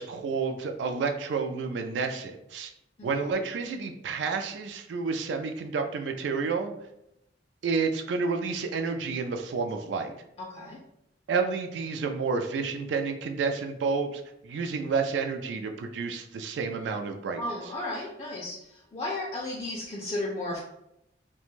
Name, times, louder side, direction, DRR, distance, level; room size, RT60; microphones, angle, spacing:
voice 1, 0.0-2.7 3.0-6.7 7.6-10.1 11.3-17.4, right 4 dB, 80° right, 5 dB, 0.3 m, -30 dB
voice 2, 10.4-10.8 17.4-20.6, left 2 dB, 35° left, -3 dB, 0.4 m, -34 dB
2.4 x 2.2 x 3.0 m, 0.81 s
head